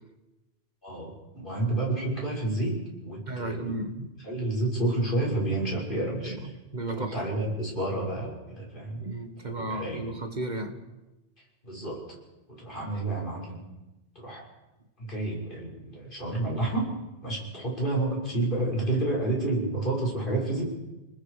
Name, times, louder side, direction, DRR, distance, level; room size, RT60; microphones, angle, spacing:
voice 1, 0.8-3.8 4.2-6.5 6.9-9.1 9.4-10.0 11.6-12.0 12.5-13.6 14.2-14.4 15.0-16.9 17.2-20.6, right 2 dB, 50° left, -3 dB, 6.8 m, -30 dB
voice 2, 3.3-4.1 6.2-6.4 6.7-7.1 9.0-10.8, right 2 dB, 45° right, 6 dB, 1.8 m, -34 dB
29.5 x 20.0 x 5.1 m, 1.0 s
omnidirectional pair, 1.1 m